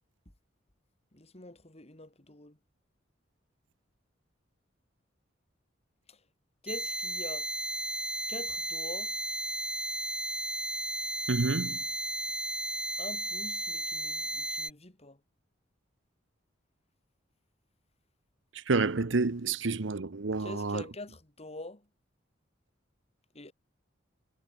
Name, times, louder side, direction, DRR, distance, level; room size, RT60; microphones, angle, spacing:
voice 1, 1.1-2.6 6.1-6.2 6.6-7.5 8.3-9.1 13.0-15.2 20.4-21.8 23.3-23.5, left 2 dB, 35° left, 3.2 m, -45 dB
sound 1, 6.7-14.7, right 1 dB, 5° right, 0.9 m, -34 dB
voice 2, 11.3-11.8 18.5-20.8, right 3 dB, 75° right, 0.9 m, -29 dB
head